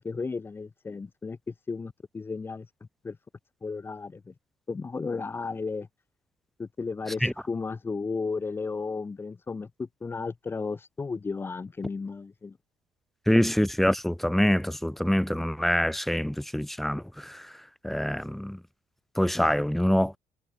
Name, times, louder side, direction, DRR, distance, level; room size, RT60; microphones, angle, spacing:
voice 1, 0.0-2.7 3.0-3.2 3.6-4.3 4.7-5.9 6.6-12.6, left 4 dB, 20° left, 6.3 m, -34 dB
voice 2, 13.3-17.5 17.8-18.6 19.2-20.2, equal, ahead, 2.1 m, -25 dB
cardioid pair, 140°, 11 cm